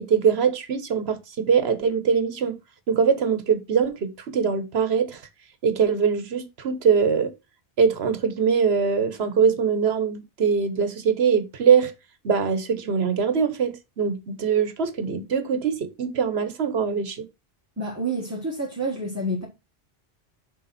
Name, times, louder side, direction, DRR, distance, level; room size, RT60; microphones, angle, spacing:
voice 1, 0.0-2.5 2.9-5.2 5.6-7.3 7.8-11.9 12.2-17.2, right 6 dB, 80° right, 1.3 m, -22 dB
voice 2, 17.8-19.5, right 1 dB, 15° right, 1.6 m, -28 dB
6.8 x 4.8 x 4.2 m
omnidirectional pair, 1.0 m